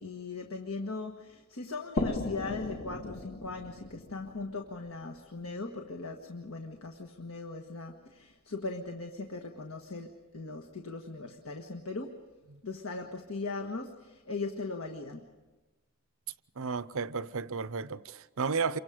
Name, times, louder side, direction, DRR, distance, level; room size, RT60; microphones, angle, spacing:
voice 1, 0.0-12.2 12.6-15.3, left 3 dB, 65° left, 1.6 m, -39 dB
sound 1, 2.0-5.5, left 2 dB, 40° left, 1.1 m, -37 dB
voice 2, 16.6-18.8, right 5 dB, 65° right, 0.7 m, -33 dB
28.5 x 24.5 x 5.1 m
head